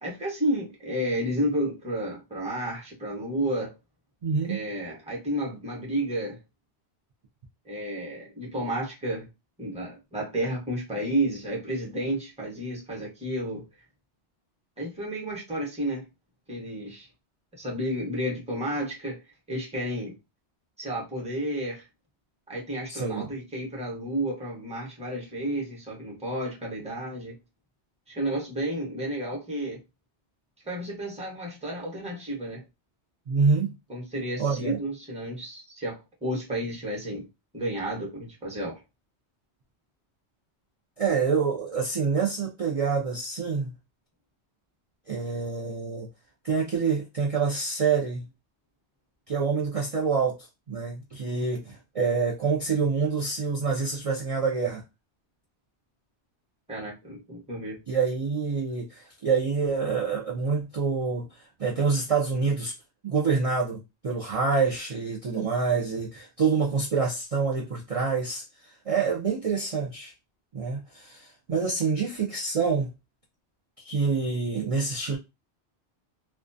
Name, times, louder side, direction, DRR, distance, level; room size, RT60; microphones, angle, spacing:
voice 1, 0.0-3.7 4.5-6.4 7.6-9.3 9.6-13.6 14.8-16.0 16.5-17.1 17.6-19.2 19.5-20.2 20.8-21.8 22.5-27.4 28.1-29.8 30.6-32.6 33.9-37.3 37.5-38.8 56.7-57.8, right 1 dB, 5° right, 0.7 m, -31 dB
voice 2, 4.2-4.6 22.9-23.3 33.3-33.8 34.4-34.8 41.0-43.7 45.1-46.1 46.4-48.2 49.3-50.4 50.7-54.8 57.9-61.3 61.6-62.7 63.0-70.1 70.5-72.9 73.8-75.2, right 5 dB, 50° right, 0.4 m, -26 dB
2.2 x 2.2 x 2.5 m
omnidirectional pair, 1.2 m